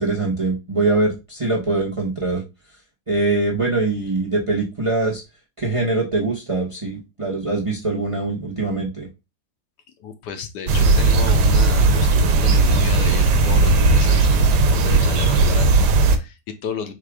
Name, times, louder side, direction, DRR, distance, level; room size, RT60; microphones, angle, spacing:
voice 1, 0.0-2.4 3.1-5.2 5.6-9.1, right 3 dB, 25° right, -2 dB, 0.7 m, -23 dB
voice 2, 10.0-16.9, left 7 dB, 75° left, 8 dB, 1.2 m, -32 dB
sound 1, 10.7-16.2, right 3 dB, 75° right, 1.2 m, -16 dB
4.2 x 2.5 x 4.7 m, 0.25 s
omnidirectional pair, 1.9 m